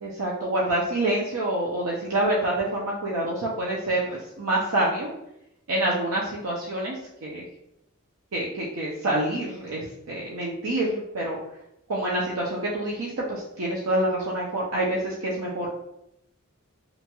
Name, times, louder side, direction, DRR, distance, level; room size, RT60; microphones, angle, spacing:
voice 1, 0.0-5.1 5.7-7.4 8.3-11.4 11.9-15.7, right 1 dB, 70° right, -5 dB, 0.5 m, -27 dB
2.8 x 2.2 x 2.9 m, 0.83 s
head